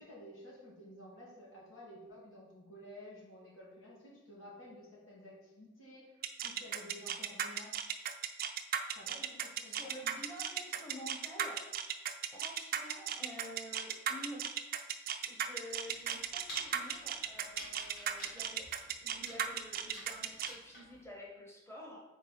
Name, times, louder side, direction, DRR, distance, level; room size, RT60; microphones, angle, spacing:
voice 1, 0.0-7.7 8.9-9.9, left 1 dB, 85° left, -4 dB, 2.1 m, -53 dB
sound 1, 6.2-20.5, right 9 dB, 45° right, 0.4 m, -36 dB
voice 2, 9.6-11.7 12.3-14.6 15.2-22.0, equal, 15° left, -2 dB, 1.0 m, -49 dB
sound 2, 15.9-21.0, left 1 dB, 50° left, 2.1 m, -50 dB
4.6 x 4.4 x 5.8 m, 1.1 s
head